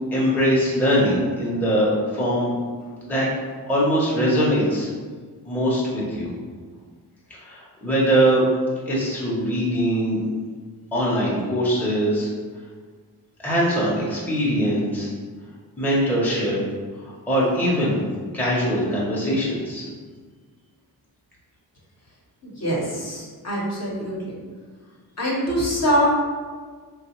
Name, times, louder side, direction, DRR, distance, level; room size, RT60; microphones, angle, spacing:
voice 1, 0.1-2.5 3.1-3.3 3.7-4.9 5.5-6.3 7.3-8.4 8.9-10.2 10.9-12.3 13.4-15.1 15.8-16.6 17.0-18.0 18.3-19.8, equal, 5° left, -6 dB, 0.7 m, -22 dB
voice 2, 22.6-24.4 25.2-26.1, equal, 40° left, -4 dB, 0.8 m, -23 dB
3.1 x 2.3 x 2.9 m, 1.5 s
cardioid pair, 80°, 39 cm